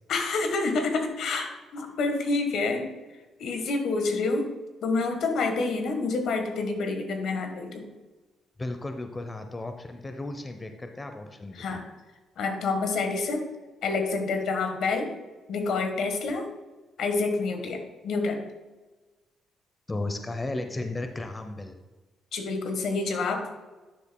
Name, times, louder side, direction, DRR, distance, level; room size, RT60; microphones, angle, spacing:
voice 1, 0.1-2.8 3.4-4.5 4.8-7.9 11.5-11.8 12.4-13.4 13.8-15.1 15.5-16.5 17.0-18.4 22.3-23.5, left 3 dB, 75° left, 5 dB, 1.3 m, -28 dB
voice 2, 8.6-11.8 19.9-21.7, left 2 dB, 20° left, 6 dB, 0.7 m, -34 dB
11.5 x 7.0 x 2.2 m, 1.2 s
cardioid pair, 90°, 0 cm